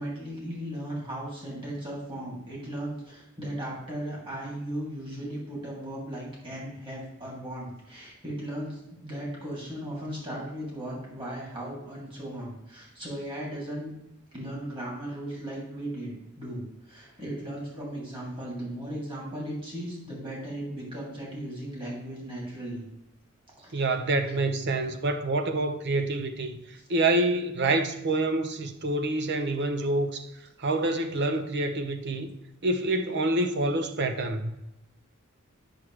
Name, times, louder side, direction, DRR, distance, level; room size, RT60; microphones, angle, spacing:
voice 1, 0.0-13.9 14.3-22.8 23.6-23.7, right 1 dB, 25° right, 2.8 m, -37 dB
voice 2, 23.7-26.6 26.9-30.3 30.6-32.4 32.6-34.5, right 2 dB, 55° right, 0.7 m, -27 dB
8.8 x 6.1 x 3.2 m
head